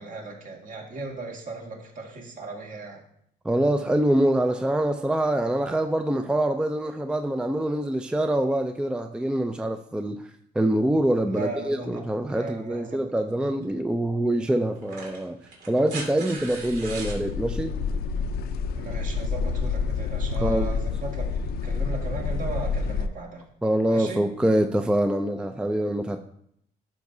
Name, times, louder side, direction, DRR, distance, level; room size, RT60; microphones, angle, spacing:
voice 1, 0.0-3.0 11.3-12.1 12.3-13.0 18.7-21.3 21.6-23.4 23.9-24.2, right 3 dB, 55° right, 2.0 m, -36 dB
voice 2, 3.4-10.2 10.6-15.4 15.7-17.7 20.4-20.7 23.6-26.2, right 1 dB, 5° right, 0.4 m, -25 dB
sound 1, 13.6-13.7 14.7-17.2 18.7-18.8, right 3 dB, 80° right, 2.6 m, -39 dB
sound 2, 16.5-23.1, left 5 dB, 65° left, 0.6 m, -28 dB
12.0 x 6.0 x 2.7 m
cardioid pair, 110°, 17 cm